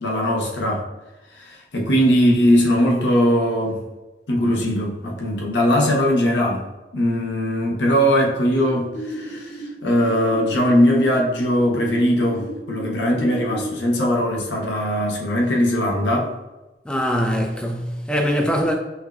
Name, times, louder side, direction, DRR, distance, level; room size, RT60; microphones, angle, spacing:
voice 1, 0.0-0.8 1.3-3.8 4.3-6.6 6.9-16.3, equal, 90° left, 0.7 m, -20 dB
sound 1, 8.7-13.7, right 1 dB, 35° left, 0.7 m, -35 dB
voice 2, 16.9-18.7, equal, 5° left, 0.3 m, -22 dB
5.6 x 2.2 x 2.3 m
head